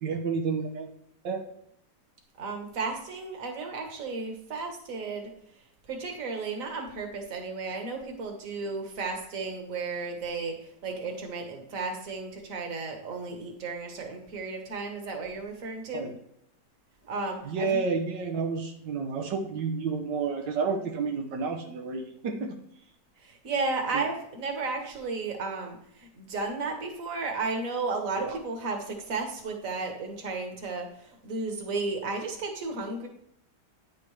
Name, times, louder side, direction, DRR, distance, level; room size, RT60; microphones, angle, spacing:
voice 1, 0.0-0.9 1.2-1.4 15.9-16.1 17.4-22.6 23.9-24.1 28.2-28.4, right 5 dB, 85° right, 2 dB, 1.5 m, -30 dB
voice 2, 2.4-5.3 5.9-16.0 17.1-17.8 23.2-33.1, right 3 dB, 50° right, 3 dB, 1.8 m, -34 dB
9.7 x 6.8 x 3.2 m, 0.72 s
omnidirectional pair, 1.9 m